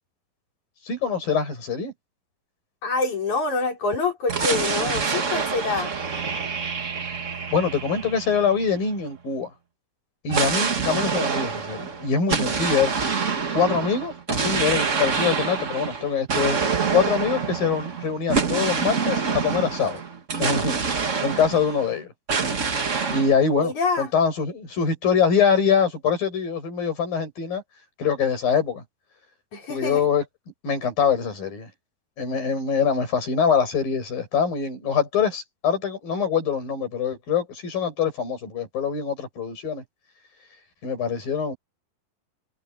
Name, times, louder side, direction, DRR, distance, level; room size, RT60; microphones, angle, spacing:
voice 1, 0.9-1.9 7.5-9.5 10.2-12.9 13.5-20.0 20.4-20.8 21.2-22.1 23.1-27.6 28.0-28.8 29.7-30.2 30.6-31.7 32.2-39.8 40.8-41.6, left 6 dB, 75° left, 9.2 m, -24 dB
voice 2, 2.8-5.9 23.6-24.1 29.5-30.0, left 3 dB, 55° left, 6.7 m, -26 dB
sound 1, 4.3-9.0 10.3-21.9 22.3-23.4, right 5 dB, 70° right, 0.7 m, -26 dB
omnidirectional pair, 4.1 m